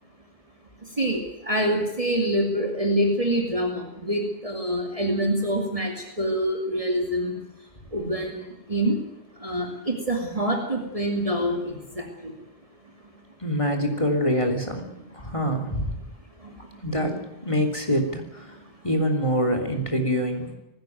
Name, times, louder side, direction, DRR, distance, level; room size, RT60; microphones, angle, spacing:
voice 1, 1.5-7.3 7.9-9.0 9.4-12.3, right 1 dB, 30° right, 1 dB, 2.7 m, -26 dB
voice 2, 13.4-14.9 15.1-16.0 16.8-18.4 18.8-20.5, equal, 30° left, 5 dB, 3.3 m, -25 dB
19.5 x 16.0 x 9.4 m, 0.89 s
omnidirectional pair, 1.1 m